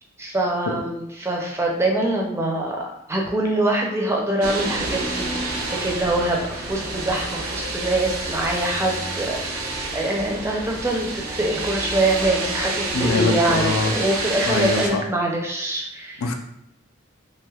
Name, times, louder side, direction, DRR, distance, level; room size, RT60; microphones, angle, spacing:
voice 1, 0.2-16.3, right 2 dB, 15° right, 0 dB, 0.4 m, -24 dB
sound 1, 4.4-14.9, right 2 dB, 85° right, 0.6 m, -28 dB
voice 2, 12.9-14.0 14.5-15.0 16.2-16.3, left 3 dB, 85° left, 5 dB, 0.4 m, -23 dB
3.2 x 2.8 x 2.3 m, 0.80 s
head